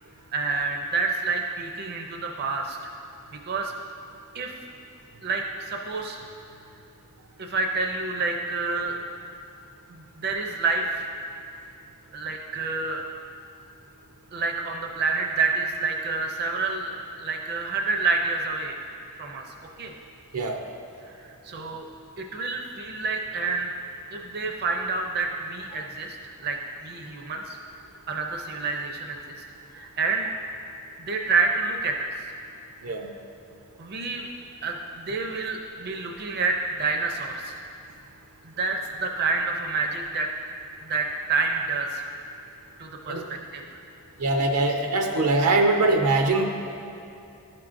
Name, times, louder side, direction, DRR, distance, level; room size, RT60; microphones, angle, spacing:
voice 1, 0.3-2.8 3.3-3.7 4.3-4.5 5.2-6.2 7.4-9.0 9.9-11.1 12.1-13.0 14.3-16.9 17.2-18.8 19.2-19.9 21.0-21.9 22.2-23.7 24.1-27.6 28.1-29.3 29.7-30.3 31.0-32.3 33.8-34.3 34.6-37.6 38.4-40.3 40.8-42.1 42.8-43.8, right 4 dB, 45° right, 2 dB, 0.5 m, -28 dB
voice 2, 44.2-46.4, right 2 dB, 90° right, 3 dB, 0.7 m, -22 dB
12.0 x 5.9 x 2.5 m, 2.9 s
head